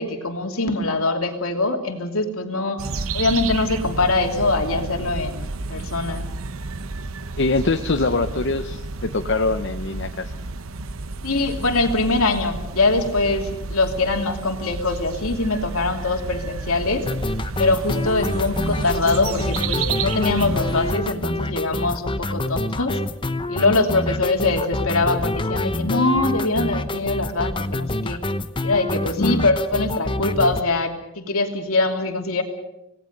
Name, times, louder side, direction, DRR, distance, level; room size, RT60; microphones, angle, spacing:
voice 1, 0.0-2.8 3.1-6.2 11.2-17.1 17.6-23.0 23.5-28.2 28.6-32.4, left 3 dB, 80° left, 4 dB, 2.9 m, -23 dB
sound 1, 2.8-21.0, right 3 dB, 75° right, 1.0 m, -31 dB
voice 2, 7.4-10.3 29.2-29.4, left 3 dB, 55° left, 7 dB, 0.8 m, -23 dB
sound 2, 17.0-30.6, left 2 dB, 25° left, 0.9 m, -26 dB
26.5 x 18.5 x 6.6 m, 0.88 s
head